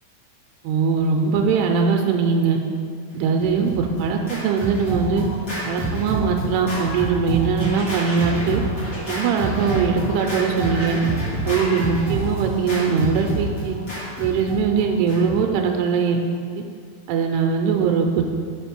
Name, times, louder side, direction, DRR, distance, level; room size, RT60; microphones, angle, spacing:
voice 1, 0.6-2.6 3.1-5.2 5.7-8.6 9.1-11.0 11.5-13.8 14.2-16.2 17.1-18.3, right 5 dB, 85° right, 3 dB, 2.7 m, -21 dB
Scratching (performance technique), 3.4-15.5, right 1 dB, 30° left, 1.6 m, -28 dB
6.9 x 5.2 x 5.9 m, 2.2 s
omnidirectional pair, 4.7 m